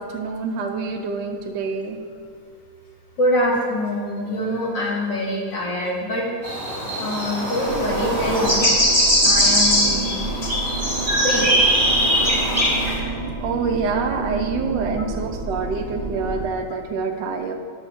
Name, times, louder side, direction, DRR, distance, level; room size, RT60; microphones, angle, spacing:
voice 1, 0.0-2.0 13.4-17.5, right 4 dB, 85° right, 4 dB, 1.3 m, -26 dB
voice 2, 3.2-6.3 7.0-10.1 10.4-10.5 11.2-11.5 14.9-15.0, equal, 85° left, -3 dB, 2.3 m, -24 dB
sound 1, 6.4-12.9, equal, 15° left, 2.0 m, -20 dB
sound 2, 7.6-16.5, right 3 dB, 40° right, 0.8 m, -30 dB
9.1 x 3.5 x 6.1 m, 2.2 s
omnidirectional pair, 1.9 m